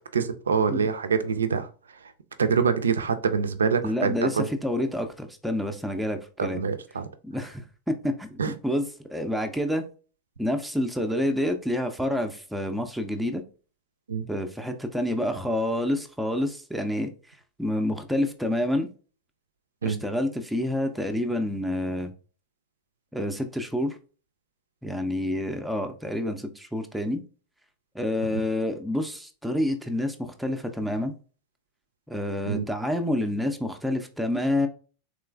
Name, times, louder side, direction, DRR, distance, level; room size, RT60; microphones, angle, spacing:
voice 1, 0.1-1.7 2.4-4.5 6.4-7.1 8.4-8.5 14.1-14.3 19.8-20.0 28.3-28.4 32.5-32.6, right 6 dB, 70° right, 0.4 m, -25 dB
voice 2, 3.8-6.6 7.2-8.8 9.1-9.8 10.4-13.4 14.3-17.1 17.6-18.9 19.8-22.1 23.1-24.0 24.8-27.2 27.9-31.1 32.1-34.7, left 1 dB, ahead, 0.4 m, -28 dB
3.7 x 3.0 x 2.3 m
figure-of-eight pair, 90°, 0 cm